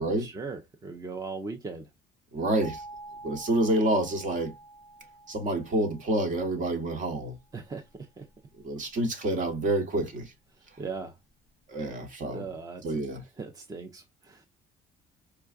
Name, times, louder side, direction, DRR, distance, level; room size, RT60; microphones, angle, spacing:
voice 1, 0.2-1.9 7.5-7.9 8.2-8.3 10.8-11.1 11.7-11.9 12.3-13.0 13.4-14.5, right 4 dB, 20° right, 0.6 m, -39 dB
voice 2, 2.3-2.8 3.2-4.5 5.3-7.4 8.6-10.3 11.7-12.4 12.8-13.2, right 1 dB, 50° right, 1.2 m, -28 dB
sound 1, 2.6-7.3, right 2 dB, 75° right, 1.9 m, -48 dB
4.6 x 2.3 x 2.4 m
cardioid pair, 110°, 17 cm